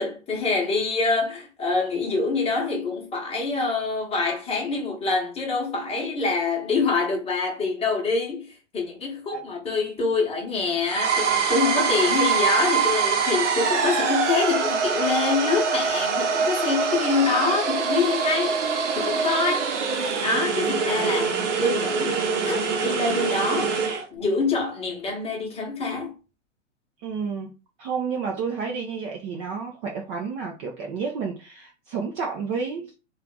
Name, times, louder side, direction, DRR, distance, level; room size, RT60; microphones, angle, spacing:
voice 1, 0.0-18.6 18.9-19.7 20.2-21.3 21.6-23.8 24.1-26.2, left 4 dB, 15° left, 1.1 m, -25 dB
sound 1, 10.9-24.0, right 5 dB, 65° right, 0.9 m, -24 dB
voice 2, 20.8-21.3 27.0-27.5 27.8-32.9, right 5 dB, 25° right, 0.5 m, -31 dB
3.2 x 2.4 x 3.8 m
figure-of-eight pair, 110°, 39 cm